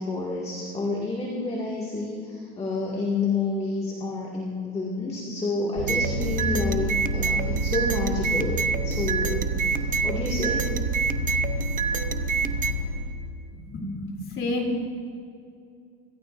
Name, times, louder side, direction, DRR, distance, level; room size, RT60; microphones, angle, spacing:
voice 1, 0.0-10.7, left 3 dB, 15° left, -3 dB, 1.9 m, -29 dB
Vehicle, 5.8-13.1, right 1 dB, 55° right, 3.2 m, -28 dB
sound 1, 5.9-12.7, right 6 dB, 25° right, 0.6 m, -29 dB
voice 2, 13.5-14.8, left 2 dB, 35° left, 0 dB, 3.0 m, -30 dB
26.0 x 14.5 x 2.5 m, 2.4 s
cardioid pair, 150°, 35 cm